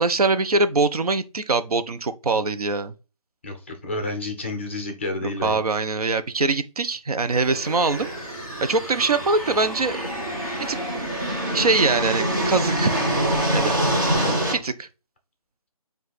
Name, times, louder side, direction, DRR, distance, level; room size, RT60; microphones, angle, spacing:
voice 1, 0.0-2.9 5.2-8.1 8.6-10.1 10.6-10.8 11.5-13.0 13.5-13.8 14.6-14.9, right 3 dB, 80° right, 0.6 m, -23 dB
voice 2, 3.4-5.6 14.1-14.4, left 2 dB, 20° left, 0.6 m, -30 dB
sound 1, 7.2-14.6, left 1 dB, 5° right, 1.2 m, -38 dB
sound 2, 7.3-14.5, right 1 dB, 30° right, 1.2 m, -26 dB
5.2 x 2.5 x 3.9 m
figure-of-eight pair, 170°, 19 cm